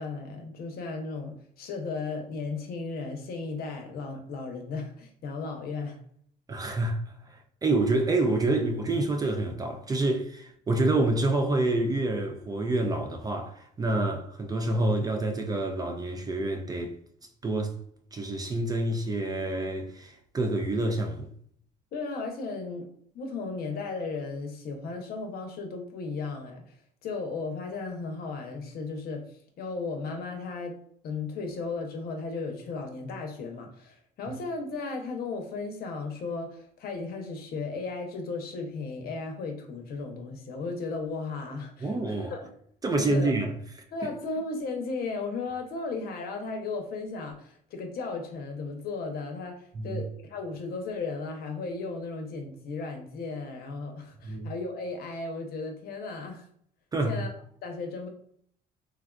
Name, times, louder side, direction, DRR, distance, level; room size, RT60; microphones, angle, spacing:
voice 1, 0.0-6.0 21.9-22.9 23.1-26.6 27.0-29.2 29.6-30.8 31.0-42.5 42.9-43.3 43.9-56.4 57.1-57.3 57.6-58.1, left 4 dB, 65° left, 0.7 m, -35 dB
voice 2, 6.5-17.0 17.4-17.7 18.1-21.3 34.3-34.4 41.8-42.3 42.8-43.6 49.7-50.0 54.2-54.5 56.9-57.2, right 2 dB, 20° right, 0.4 m, -27 dB
3.4 x 2.4 x 2.2 m
cardioid pair, 110°, 17 cm